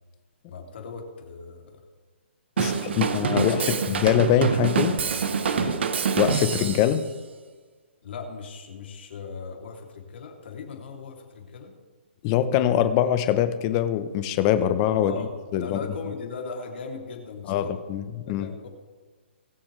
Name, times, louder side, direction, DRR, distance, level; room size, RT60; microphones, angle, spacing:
voice 1, 0.5-1.8 2.6-3.8 5.5-5.8 8.0-11.7 14.9-15.3 15.6-17.7 18.3-18.7, left 5 dB, 65° left, 1 dB, 2.9 m, -38 dB
voice 2, 2.6-3.6 4.0-5.0 6.2-7.0 12.2-15.1 15.5-15.8 17.5-17.6 17.9-18.0 18.3-18.5, left 11 dB, 25° left, 11 dB, 0.8 m, -23 dB
Drum kit / Drum, 2.6-7.0, right 6 dB, 65° right, 1.1 m, -26 dB
21.0 x 7.1 x 3.3 m, 1.4 s
hypercardioid pair, 155°, 6 cm